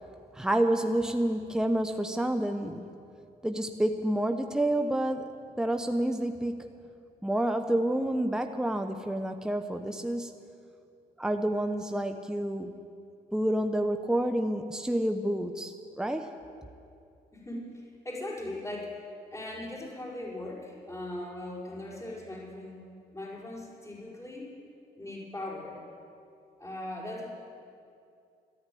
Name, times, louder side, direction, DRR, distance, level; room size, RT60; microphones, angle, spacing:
voice 1, 0.3-2.9 3.4-6.6 7.2-10.4 11.2-12.7 13.3-16.3, right 1 dB, 5° right, 6 dB, 1.0 m, -29 dB
voice 2, 17.3-22.8 23.1-24.5 25.0-25.8 26.6-27.3, left 1 dB, 15° left, -4 dB, 5.0 m, -39 dB
13.5 x 11.0 x 9.3 m, 2.5 s
supercardioid pair, 50°, 20 cm